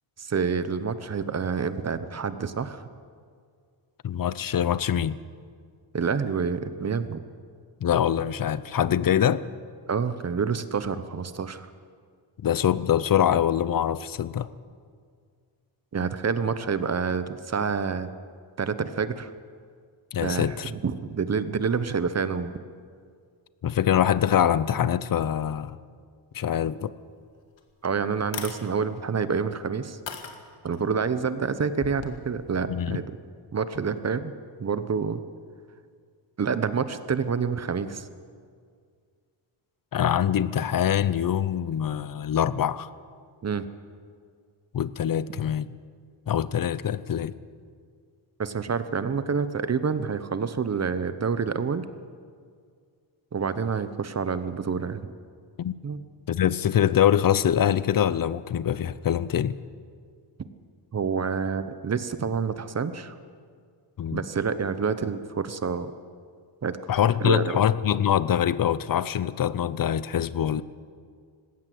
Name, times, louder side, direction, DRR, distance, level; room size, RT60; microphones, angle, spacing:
voice 1, 0.2-2.9 5.9-7.2 9.9-11.7 15.9-18.1 18.6-19.3 20.2-22.5 27.8-30.0 30.6-33.1 33.5-34.3 34.6-35.2 36.4-38.1 43.4-43.7 48.4-51.9 53.3-55.1 55.8-56.0 60.9-63.1 64.1-65.9 66.6-66.8 67.2-67.6, right 5 dB, 35° right, 12 dB, 0.9 m, -28 dB
voice 2, 4.0-5.2 7.8-9.4 12.4-14.5 20.1-20.7 23.6-25.8 26.3-26.9 32.7-33.0 39.9-42.9 44.7-45.7 46.3-47.3 55.6-55.7 56.3-59.6 64.0-64.2 66.9-70.6, left 9 dB, 45° left, 17 dB, 0.6 m, -24 dB
sound 1, 27.1-27.2 27.6-27.7 28.2-28.6 29.3-29.4 30.1-30.8 31.7-32.1, left 6 dB, 65° left, 2.1 m, -36 dB
19.5 x 17.0 x 7.7 m, 2.1 s
wide cardioid pair, 150°, 47 cm